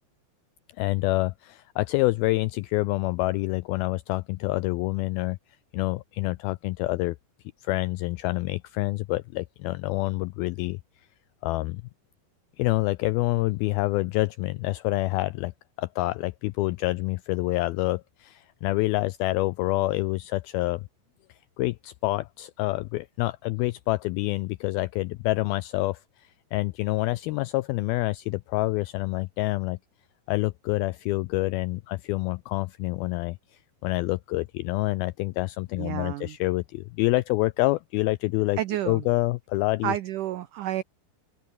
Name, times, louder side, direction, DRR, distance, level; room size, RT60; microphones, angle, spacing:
voice 1, 0.8-5.4 5.7-7.2 7.6-10.8 11.4-11.8 12.6-15.5 15.8-20.9 21.6-29.8 30.3-38.6 38.9-39.9, left 20 dB, 85° left, 2.1 m, -27 dB
voice 2, 35.8-36.4 38.6-39.0 39.8-40.8, right 13 dB, 85° right, 1.8 m, -30 dB
omnidirectional pair, 4.9 m